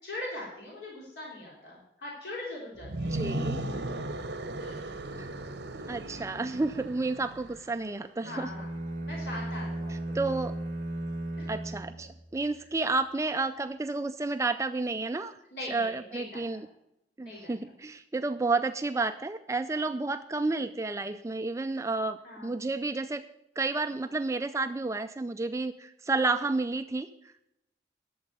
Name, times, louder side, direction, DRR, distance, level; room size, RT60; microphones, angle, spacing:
voice 1, 0.0-3.3 4.6-5.0 8.2-10.2 11.4-11.5 12.6-12.7 15.5-16.6 17.2-17.7 22.2-22.7, left 1 dB, 70° left, -4 dB, 3.8 m, -42 dB
sound 1, 2.8-7.8, right 1 dB, 75° right, 1.1 m, -36 dB
voice 2, 3.1-3.6 5.2-5.3 5.9-8.5 10.1-10.5 11.5-15.3 15.7-16.7 17.2-23.2 23.6-27.1, right 3 dB, 15° right, 9 dB, 0.4 m, -31 dB
sound 2, 8.2-12.6, right 1 dB, 45° right, 2.4 m, -36 dB
12.0 x 7.3 x 6.7 m, 0.84 s
head